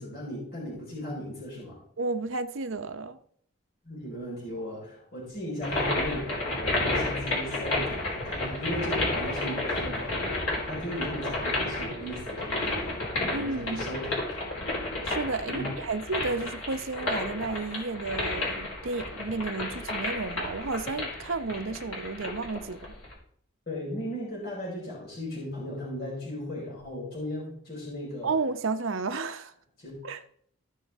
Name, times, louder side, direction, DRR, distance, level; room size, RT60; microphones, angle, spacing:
voice 1, 0.0-1.8 3.8-10.2 10.6-13.0 13.3-14.1 15.5-15.7 23.7-28.3 29.8-29.9, equal, 50° left, 4.9 m, -36 dB
voice 2, 2.0-3.2 13.3-13.8 15.0-22.9 28.2-29.5 30.0-30.2, right 3 dB, 75° right, 0.8 m, -32 dB
sound 1, 5.6-23.1, left 2 dB, 90° left, 4.0 m, -32 dB
16.0 x 6.4 x 3.6 m
head